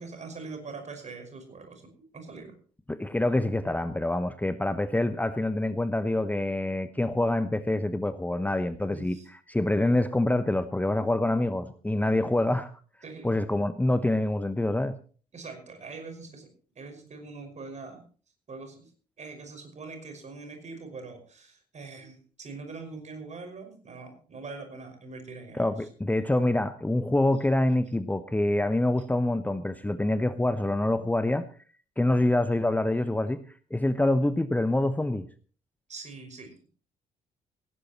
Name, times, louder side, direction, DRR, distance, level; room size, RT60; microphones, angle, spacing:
voice 1, 0.0-2.5 8.9-9.3 13.0-13.3 15.3-18.0 18.5-18.9 19.2-25.9 35.9-36.7, right 4 dB, 40° right, 6 dB, 5.6 m, -43 dB
voice 2, 2.9-9.2 9.5-12.7 13.2-14.9 25.5-31.4 32.0-33.4 33.7-35.3, left 1 dB, 10° left, 12 dB, 1.0 m, -26 dB
18.0 x 18.0 x 3.0 m, 0.41 s
figure-of-eight pair, 45°, 18 cm